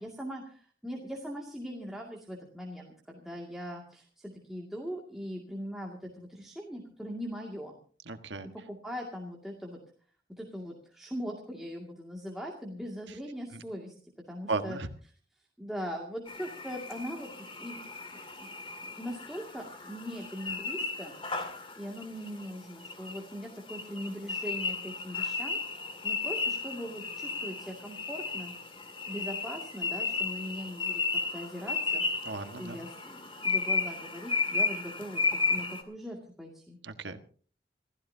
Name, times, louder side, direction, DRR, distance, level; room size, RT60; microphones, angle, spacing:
voice 1, 0.0-7.8 8.5-9.8 10.4-13.9 14.3-14.8 15.6-18.5 18.8-21.1 21.8-25.6 26.0-28.5 29.1-31.0 31.3-32.2 32.6-36.8, equal, ahead, -2 dB, 2.3 m, -40 dB
voice 2, 8.1-8.5 13.5-13.6 14.5-14.9 32.2-32.8 36.8-37.2, right 3 dB, 90° right, 7 dB, 1.5 m, -35 dB
sound 1, 16.3-35.8, left 4 dB, 30° left, 2.3 m, -34 dB
28.0 x 15.0 x 2.8 m, 0.43 s
head